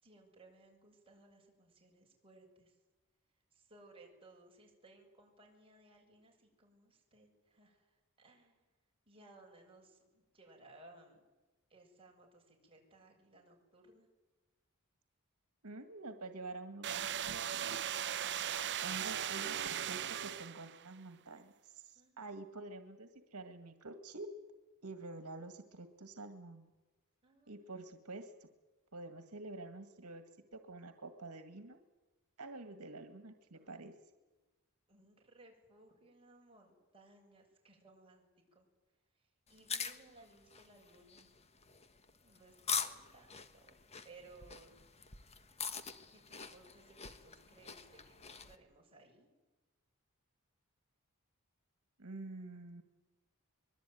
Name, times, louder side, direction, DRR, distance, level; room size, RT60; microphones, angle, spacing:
voice 1, 0.0-2.8 3.5-8.7 9.1-11.2 11.7-14.1 21.9-22.3 27.2-27.7 33.5-33.9 34.9-38.3 38.5-38.7 39.2-41.3 42.2-43.8 44.0-44.8 46.1-49.3, right 2 dB, 25° right, 0 dB, 7.2 m, -62 dB
voice 2, 15.6-17.7 18.8-24.3 24.8-26.7 27.5-28.5 28.9-30.2 30.5-31.8 32.4-33.9 52.0-52.8, right 2 dB, 80° right, 8 dB, 1.9 m, -48 dB
sound 1, 16.8-20.9, right 10 dB, 55° right, 0.8 m, -38 dB
sound 2, 39.5-48.6, left 6 dB, 30° left, 1.4 m, -44 dB
24.0 x 22.5 x 9.3 m, 1.2 s
head